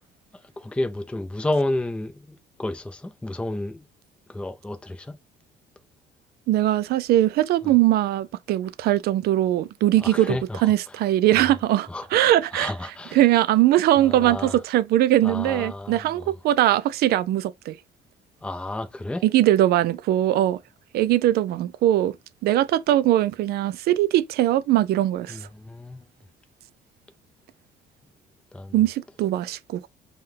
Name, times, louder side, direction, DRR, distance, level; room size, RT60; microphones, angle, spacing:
voice 1, 0.6-3.8 4.3-5.1 10.0-10.7 11.3-11.5 11.9-13.2 14.0-14.6 15.2-16.3 18.4-19.2 25.3-26.1 28.5-28.7, left 1 dB, 5° left, 0.6 m, -31 dB
voice 2, 6.5-12.7 13.1-17.8 19.2-20.6 20.9-22.1 22.4-25.4 28.7-29.9, right 13 dB, 70° right, 0.4 m, -21 dB
5.5 x 2.3 x 3.3 m
cardioid pair, 110°, 17 cm